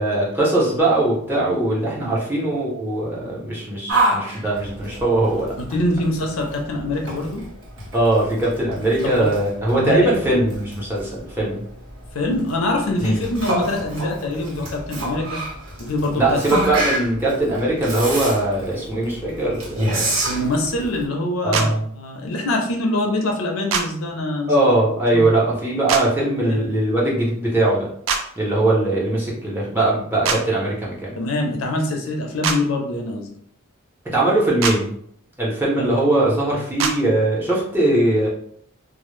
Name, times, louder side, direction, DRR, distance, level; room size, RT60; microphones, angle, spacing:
voice 1, 0.0-5.5 7.9-11.6 13.0-13.3 16.2-20.1 21.4-21.8 24.5-27.9 28.4-31.2 34.1-34.9 35.4-38.3, right 1 dB, 10° right, -6 dB, 0.6 m, -20 dB
Yell, 3.9-21.0, right 1 dB, 85° right, 0.8 m, -28 dB
voice 2, 5.7-7.4 9.0-9.3 9.7-10.1 12.1-15.4 15.8-16.4 20.3-24.5 25.1-25.3 26.5-26.6 31.2-33.3 35.8-35.9, left 1 dB, 75° left, 2 dB, 0.5 m, -24 dB
sound 1, 21.5-21.7 23.7-23.8 25.9-26.0 28.1-28.2 30.2-30.4 32.4-32.6 34.6-34.8 36.8-36.9, right 5 dB, 65° right, 0.3 m, -21 dB
2.0 x 2.0 x 3.0 m, 0.65 s
head